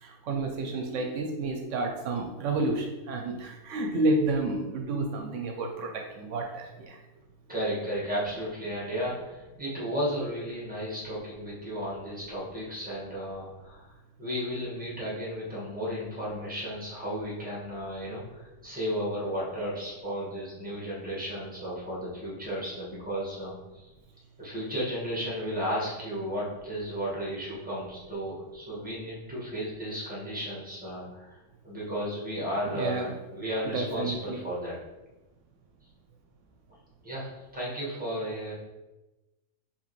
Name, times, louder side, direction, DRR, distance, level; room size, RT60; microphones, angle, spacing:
voice 1, 0.0-7.0 32.6-33.1 33.7-34.4, right 2 dB, 80° right, 2 dB, 0.9 m, -30 dB
voice 2, 7.5-13.9 14.2-23.8 24.4-31.3 31.6-34.7 37.0-38.5, equal, 5° right, -6 dB, 1.4 m, -34 dB
4.8 x 3.0 x 3.1 m, 1.1 s
omnidirectional pair, 1.3 m